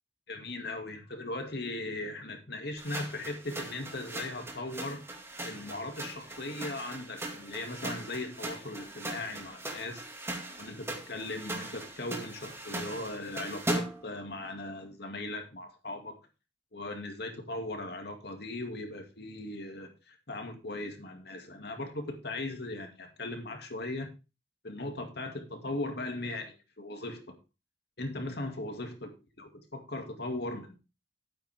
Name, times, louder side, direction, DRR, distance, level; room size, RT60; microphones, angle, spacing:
voice 1, 0.3-5.0 5.4-10.0 10.6-16.2 16.7-24.1 24.6-27.3 28.0-28.9 29.7-30.8, left 2 dB, 60° left, 4 dB, 2.4 m, -38 dB
sound 1, 2.8-14.1, right 1 dB, 15° right, 2.2 m, -39 dB
12.0 x 9.0 x 3.6 m, 0.29 s
head